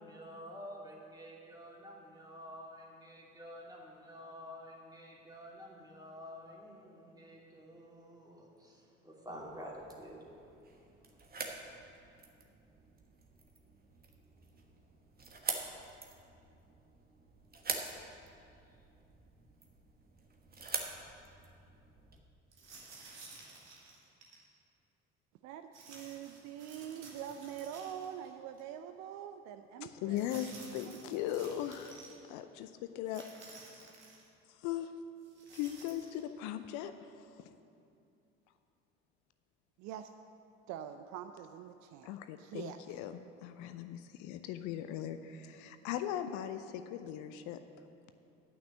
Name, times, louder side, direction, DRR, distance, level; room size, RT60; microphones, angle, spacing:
voice 1, 0.0-10.3, equal, 10° right, -3 dB, 2.6 m, -49 dB
sound 1, 9.3-22.2, right 4 dB, 25° right, 1.4 m, -45 dB
sound 2, 22.5-24.4 25.7-28.3 28.6-28.7 30.1-32.2 33.1-34.3 35.2-36.2, right 3 dB, 80° right, 1.5 m, -54 dB
voice 2, 25.4-30.2 30.8-31.3 39.8-40.1 40.7-42.1 42.4-43.0, right 9 dB, 55° right, 8 dB, 0.5 m, -45 dB
voice 3, 29.8-32.0 32.3-33.2 34.5-34.9 35.5-37.5 42.0-47.6, left 11 dB, 55° left, 10 dB, 0.5 m, -39 dB
9.5 x 6.0 x 8.3 m, 2.6 s
figure-of-eight pair, 55°, 35 cm